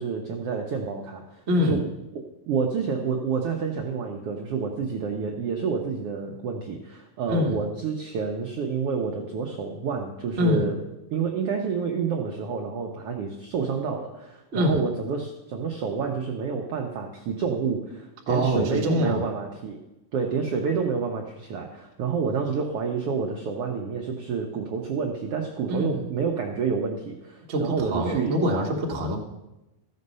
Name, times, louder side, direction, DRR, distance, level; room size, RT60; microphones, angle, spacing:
voice 1, 0.0-1.8 2.5-10.8 11.1-19.8 20.1-28.4, right 5 dB, 75° right, 2 dB, 1.3 m, -29 dB
voice 2, 1.5-1.8 7.3-7.6 10.4-10.7 14.5-14.8 18.3-19.2 25.7-26.1 27.5-29.2, equal, 55° right, 0 dB, 0.7 m, -24 dB
14.0 x 6.5 x 5.5 m, 0.97 s
omnidirectional pair, 3.8 m